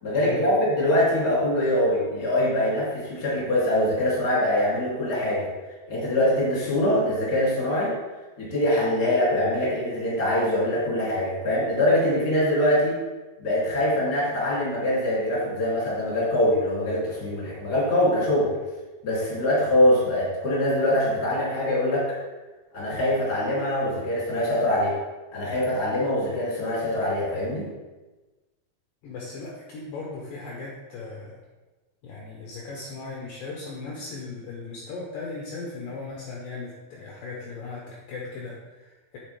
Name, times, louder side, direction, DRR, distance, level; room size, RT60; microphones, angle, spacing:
voice 1, 0.0-5.5 5.9-7.9 8.4-13.0 13.4-18.6 19.0-22.2 22.7-24.9 25.3-27.7, left 1 dB, 30° left, -6 dB, 2.8 m, -23 dB
voice 2, 29.0-31.4 32.0-39.2, left 3 dB, 70° left, -2 dB, 2.4 m, -37 dB
7.8 x 7.0 x 3.3 m, 1.2 s
omnidirectional pair, 4.5 m